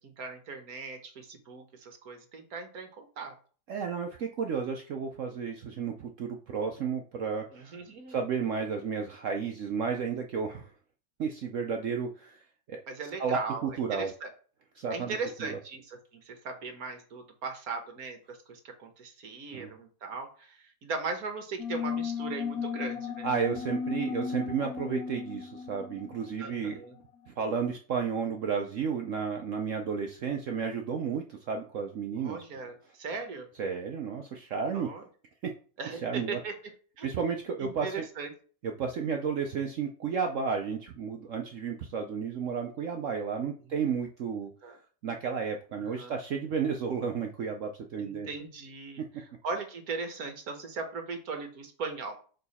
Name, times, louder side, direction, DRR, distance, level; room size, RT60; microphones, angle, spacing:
voice 1, 0.0-3.3 7.5-8.2 12.9-14.3 14.9-23.3 26.4-27.0 32.2-33.5 34.7-35.0 35.8-36.5 37.0-37.1 37.6-38.3 43.7-43.8 44.6-44.8 45.8-46.1 48.0-49.0 49.4-52.2, right 4 dB, 55° right, 5 dB, 1.4 m, -38 dB
voice 2, 3.7-7.8 8.1-10.7 11.2-12.4 12.7-12.8 13.2-14.1 14.8-15.6 19.5-19.7 23.2-26.8 27.3-32.4 33.6-34.9 35.4-35.5 35.9-36.4 37.0-38.0 38.6-44.5 45.0-48.3 49.0-49.1, right 6 dB, 90° right, 4 dB, 0.6 m, -32 dB
sound 1, 21.6-26.8, left 6 dB, 70° left, 0.9 m, -35 dB
6.8 x 3.9 x 4.1 m, 0.41 s
omnidirectional pair, 2.1 m